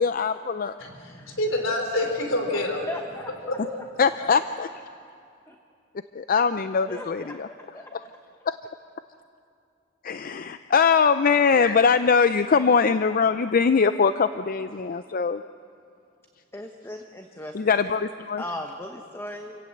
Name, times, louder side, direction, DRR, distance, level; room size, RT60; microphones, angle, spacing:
voice 1, 0.0-0.8 4.0-4.7 6.1-7.5 10.0-15.4 17.5-18.4, left 5 dB, 45° left, 11 dB, 0.5 m, -22 dB
voice 2, 0.8-2.9 3.5-3.6, left 1 dB, 85° left, 3 dB, 3.3 m, -27 dB
voice 3, 2.7-3.3 3.7-3.8 5.5-5.6 6.9-7.4 7.7-7.9 10.3-10.4 11.6-11.7 16.5-17.8 18.4-19.6, left 1 dB, 15° left, 3 dB, 1.1 m, -37 dB
28.0 x 17.0 x 7.9 m, 2.5 s
head